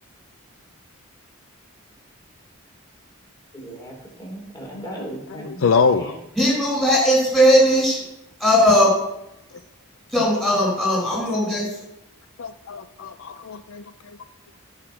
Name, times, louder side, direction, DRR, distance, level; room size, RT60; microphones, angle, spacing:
voice 1, 3.5-6.2, right 1 dB, 20° left, -2 dB, 3.2 m, -37 dB
voice 2, 5.6-6.0 12.4-14.2, left 5 dB, 70° left, 10 dB, 0.5 m, -23 dB
voice 3, 6.4-8.0 8.4-8.9 10.1-11.8, equal, ahead, -3 dB, 4.4 m, -18 dB
14.5 x 5.7 x 4.9 m, 0.87 s
head